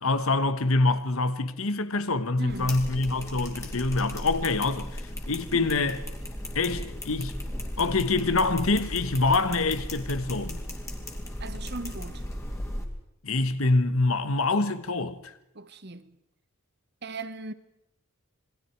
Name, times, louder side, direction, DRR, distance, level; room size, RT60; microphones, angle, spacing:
voice 1, 0.0-6.1 6.5-7.4 7.8-10.6 13.2-15.3, left 3 dB, 75° left, 1.2 m, -25 dB
voice 2, 2.4-2.8 5.5-5.6 7.8-7.9 11.4-12.2 15.5-16.1 17.0-17.5, right 2 dB, 50° right, 1.1 m, -38 dB
sound 1, 2.5-12.8, left 1 dB, 15° left, 2.5 m, -36 dB
27.5 x 21.0 x 4.6 m
head